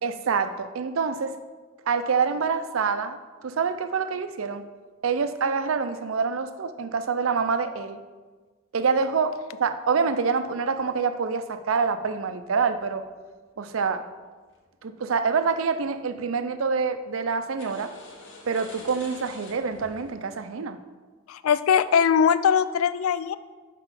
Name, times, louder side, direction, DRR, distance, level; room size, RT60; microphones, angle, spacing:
voice 1, 0.0-1.4 1.9-4.7 5.0-8.0 8.7-13.0 13.6-14.0 14.8-17.9 18.5-20.8, right 5 dB, 75° right, 10 dB, 0.5 m, -26 dB
sound 1, 11.9-13.3 14.5-14.8 15.2-15.7 16.0-16.5 17.6-20.1, left 2 dB, 65° left, 1.2 m, -48 dB
voice 2, 21.3-23.4, left 7 dB, 85° left, 15 dB, 0.3 m, -21 dB
5.8 x 4.9 x 5.7 m, 1.4 s
head